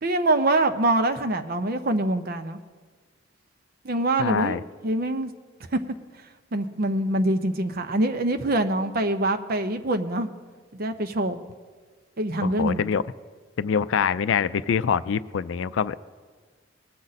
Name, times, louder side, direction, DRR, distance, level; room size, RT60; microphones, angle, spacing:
voice 1, 0.0-2.6 3.8-4.6 4.8-5.3 5.7-5.8 6.5-10.3 10.7-11.4 12.2-12.8, right 1 dB, 50° right, 8 dB, 0.7 m, -24 dB
voice 2, 4.2-4.6 12.4-13.0 13.6-16.0, left 7 dB, 75° left, 15 dB, 0.4 m, -24 dB
20.5 x 7.6 x 4.1 m, 1.5 s
head